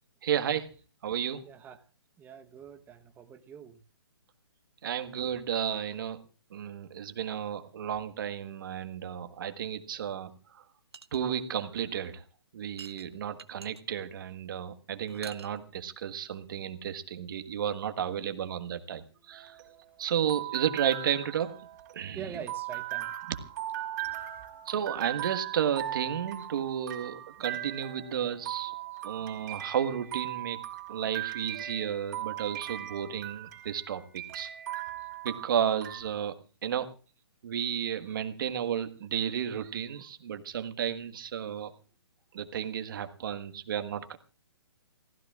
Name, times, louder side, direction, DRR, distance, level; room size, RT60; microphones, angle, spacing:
voice 1, 0.2-0.7 1.0-1.4 4.8-6.2 6.5-10.6 11.1-12.2 12.5-19.6 20.0-21.5 21.9-22.2 24.7-28.7 29.0-30.6 30.9-34.5 35.2-36.4 36.6-36.9 37.4-41.7 42.3-44.2, right 9 dB, 55° right, 1.6 m, -32 dB
voice 2, 1.4-1.8 2.2-3.8 19.3-19.9 20.4-20.6 22.1-23.3 23.8-24.7 28.2-29.6 35.0-35.1 38.0-38.2 39.5-39.7, right 8 dB, 15° right, 1.1 m, -47 dB
sound 1, 10.9-11.2 12.8-13.8 15.1-15.6, right 5 dB, 90° right, 1.1 m, -47 dB
sound 2, 19.3-36.0, right 14 dB, 40° right, 4.2 m, -39 dB
28.5 x 15.5 x 2.4 m
hypercardioid pair, 140°, 13 cm